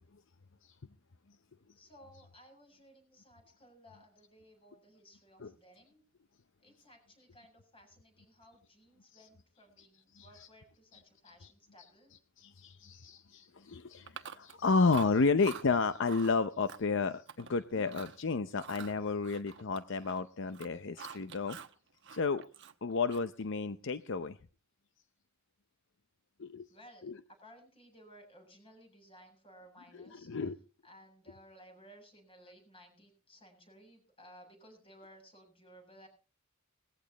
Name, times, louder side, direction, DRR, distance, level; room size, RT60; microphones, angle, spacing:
voice 1, 1.8-6.0 6.6-12.1 26.7-27.1 27.4-30.3 30.8-36.1, equal, 25° left, 3 dB, 7.3 m, -58 dB
voice 2, 12.4-21.6 22.1-22.4 22.8-24.4 26.4-26.7 27.0-27.2 30.0-30.6, left 4 dB, 65° left, 11 dB, 0.7 m, -31 dB
Chewing mastication, 14.1-14.6 14.9-15.6 16.0-16.3 16.7-17.5 17.8-18.2 18.6-20.2 20.5-21.7 22.0-23.4, right 6 dB, 60° right, 1.1 m, -46 dB
20.0 x 15.0 x 3.0 m, 0.35 s
head